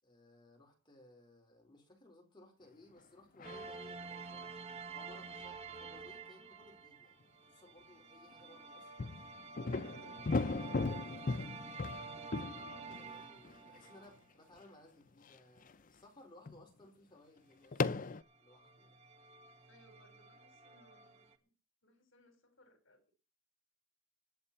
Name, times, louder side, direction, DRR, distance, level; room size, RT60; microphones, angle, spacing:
voice 1, 0.0-4.5 4.9-8.9 10.4-11.7 12.0-18.1 18.4-19.0, left 1 dB, 25° left, 4.6 m, -61 dB
sound 1, 3.4-3.8 9.0-13.9 14.6-14.7 15.3-15.7 16.5-16.6 17.7-18.2, left 3 dB, 40° left, 0.6 m, -37 dB
sound 2, 3.4-14.2 17.9-18.0 18.2-21.4, right 4 dB, 30° right, 1.2 m, -49 dB
voice 2, 19.7-21.5 21.8-23.1, left 1 dB, 65° left, 4.1 m, -67 dB
22.0 x 8.1 x 4.3 m
head